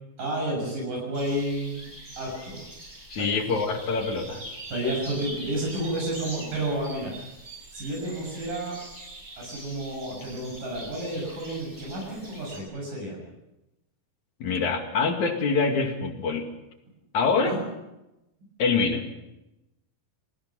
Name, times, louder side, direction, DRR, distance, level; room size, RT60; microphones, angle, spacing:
voice 1, 0.2-1.9 2.2-2.6 3.2-3.4 4.7-7.1 7.7-8.8 9.4-13.2 17.4-17.6, right 1 dB, 65° right, -1 dB, 8.2 m, -31 dB
sound 1, 1.1-12.6, right 1 dB, 15° right, 5.8 m, -43 dB
voice 2, 3.1-4.4 14.4-16.5 17.1-17.6 18.6-19.0, left 4 dB, 55° left, 4 dB, 3.5 m, -25 dB
28.5 x 19.5 x 5.9 m, 0.93 s
omnidirectional pair, 4.2 m